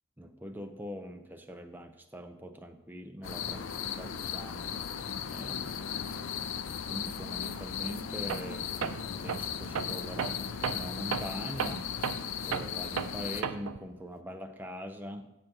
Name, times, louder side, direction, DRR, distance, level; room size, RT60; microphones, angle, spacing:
voice 1, 0.2-4.7 5.1-5.8 6.9-12.2 12.4-15.3, equal, 10° right, 5 dB, 0.4 m, -43 dB
sound 1, 3.2-13.4, left 7 dB, 60° left, 0.4 m, -37 dB
Tools, 8.3-8.5 8.8-13.9, right 6 dB, 80° right, 0.4 m, -35 dB
7.6 x 6.6 x 4.4 m, 0.92 s
head